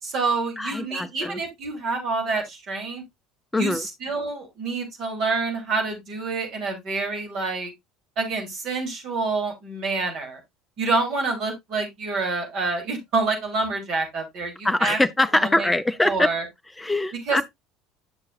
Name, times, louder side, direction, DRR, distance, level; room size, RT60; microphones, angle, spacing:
voice 1, 0.0-3.0 3.6-7.7 8.2-10.4 10.8-15.0 15.4-15.7 16.0-16.4 17.3-17.4, right 3 dB, 50° right, 3.5 m, -27 dB
voice 2, 0.6-1.4 3.5-3.9 14.6-16.3 16.8-17.4, left 2 dB, 10° left, 0.7 m, -23 dB
9.8 x 6.6 x 2.5 m
figure-of-eight pair, 60°, 0 cm